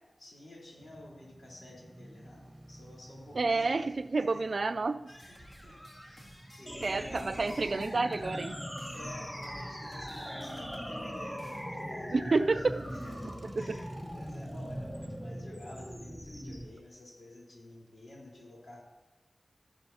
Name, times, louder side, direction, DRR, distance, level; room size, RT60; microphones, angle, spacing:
voice 1, 0.2-3.9 4.2-4.4 5.2-7.5 8.9-18.8, left 1 dB, 75° left, -4 dB, 4.0 m, -50 dB
Male speech man speaking / Motorcycle / Idling, 0.8-16.8, right 1 dB, 25° right, 1.3 m, -48 dB
voice 2, 3.3-5.0 6.8-8.6 12.1-12.8 13.6-13.8, right 3 dB, 65° right, 12 dB, 0.4 m, -29 dB
sound 1, 5.1-12.0, equal, 25° left, 1.9 m, -54 dB
sound 2, 6.7-16.7, equal, 10° left, 1.3 m, -41 dB
14.0 x 10.0 x 2.9 m, 1.1 s
wide cardioid pair, 55°, 0 cm